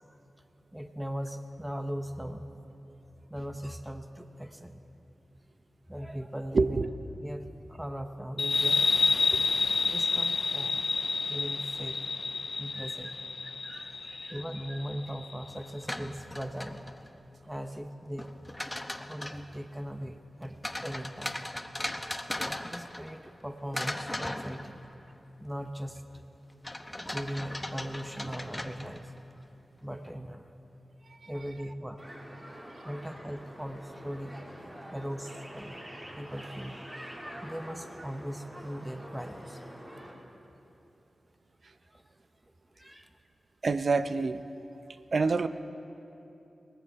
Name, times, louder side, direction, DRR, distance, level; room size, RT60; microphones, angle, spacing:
voice 1, 0.7-2.5 3.3-4.8 5.9-6.9 7.2-9.0 9.8-10.9 11.3-12.3 12.6-13.2 14.3-16.8 17.5-18.3 19.1-21.4 22.6-24.7 25.4-26.3 26.8-29.2 29.8-30.5 31.3-32.0 32.4-32.6 32.8-34.3 34.9-36.8 37.4-39.6 41.9-42.0 42.7-43.1, equal, 10° right, 7 dB, 1.0 m, -39 dB
voice 2, 6.5-6.9 12.8-12.9 13.6-14.4 31.2-31.3 43.6-44.4 45.1-45.5, right 4 dB, 60° right, 11 dB, 0.6 m, -28 dB
sound 1, 8.4-15.6, left 4 dB, 60° left, 0.4 m, -29 dB
sound 2, 15.7-17.2 18.2-19.5 20.6-23.4 23.7-25.1 26.6-29.2, left 1 dB, 15° left, 0.9 m, -38 dB
sound 3, 32.0-40.1, equal, 30° right, 3.8 m, -46 dB
19.5 x 14.0 x 4.8 m, 2.9 s
cardioid pair, 55°, 0 cm